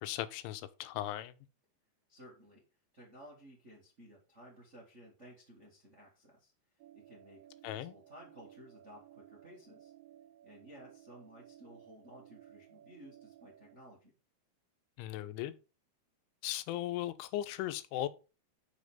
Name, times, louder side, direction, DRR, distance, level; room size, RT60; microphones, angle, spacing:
voice 1, 0.0-1.3 7.6-7.9 15.0-15.5 16.4-18.1, left 13 dB, 90° left, 3.1 m, -37 dB
voice 2, 2.1-2.6 2.9-6.5 6.9-9.9 10.4-14.1, equal, 45° right, 0.9 m, -56 dB
sound 1, 6.8-13.8, right 12 dB, 90° right, 3.0 m, -58 dB
6.5 x 6.4 x 5.2 m
omnidirectional pair, 5.3 m